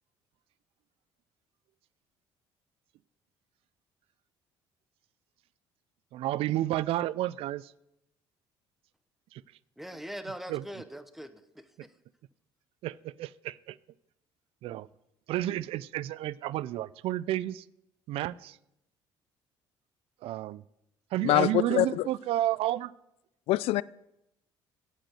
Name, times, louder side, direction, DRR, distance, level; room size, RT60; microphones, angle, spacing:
voice 1, 6.1-7.7 9.3-9.4 10.5-10.6 12.8-13.8 14.6-14.9 15.3-17.6 18.1-18.6 20.2-20.6 21.1-22.9, right 14 dB, 65° right, 0.4 m, -31 dB
voice 2, 9.8-11.9, equal, ahead, 0.9 m, -42 dB
voice 3, 21.2-22.1 23.5-23.8, left 16 dB, 70° left, 0.4 m, -24 dB
8.5 x 8.2 x 7.7 m
cardioid pair, 95°, 10 cm